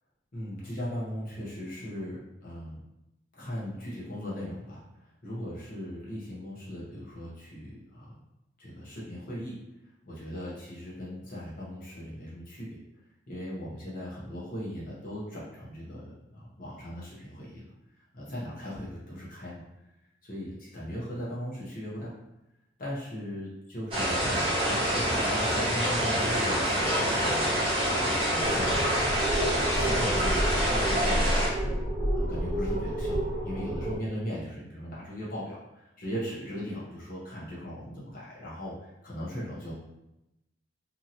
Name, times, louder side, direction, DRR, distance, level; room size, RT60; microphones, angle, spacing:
voice 1, 0.3-2.8 3.3-4.8 5.2-8.1 8.6-9.6 10.1-12.8 13.3-17.6 18.1-19.6 20.2-22.1 22.8-27.4 27.9-28.9 29.4-31.3 32.1-39.7, equal, 45° left, -7 dB, 0.8 m, -38 dB
sound 1, 23.9-31.5, equal, 30° right, 0.9 m, -26 dB
sound 2, 28.4-34.0, right 1 dB, 10° right, 1.2 m, -30 dB
2.8 x 2.6 x 2.7 m, 0.89 s
head